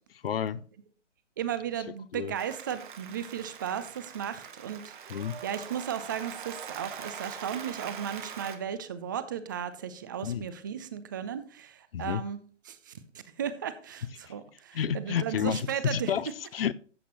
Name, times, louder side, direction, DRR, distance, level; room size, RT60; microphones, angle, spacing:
voice 1, 0.2-0.6 2.1-2.3 5.1-5.4 10.2-10.4 11.9-12.2 14.7-16.7, left 8 dB, 50° left, 0.6 m, -30 dB
voice 2, 1.4-12.4 12.7-12.9 13.4-16.1, right 8 dB, 15° right, 0.5 m, -35 dB
Applause, 2.3-8.6, right 7 dB, 40° right, 1.3 m, -43 dB
13.5 x 8.2 x 2.9 m
figure-of-eight pair, 130°, 37 cm